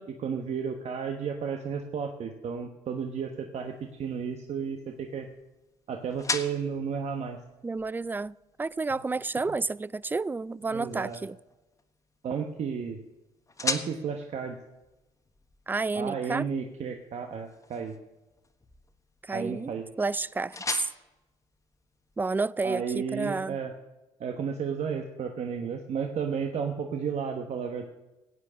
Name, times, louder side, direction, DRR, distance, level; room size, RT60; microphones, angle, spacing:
voice 1, 0.0-5.3 5.9-7.4 10.7-11.3 12.2-13.0 13.6-14.6 15.9-18.0 19.3-19.9 22.6-23.7 24.2-27.8, right 6 dB, 55° right, 1.2 m, -33 dB
sound 1, 3.5-22.4, left 3 dB, 25° left, 1.4 m, -42 dB
voice 2, 7.6-11.4 15.7-16.4 19.2-20.9 22.2-23.6, right 3 dB, 15° right, 0.3 m, -31 dB
15.5 x 8.6 x 6.3 m
supercardioid pair, 75°, 13 cm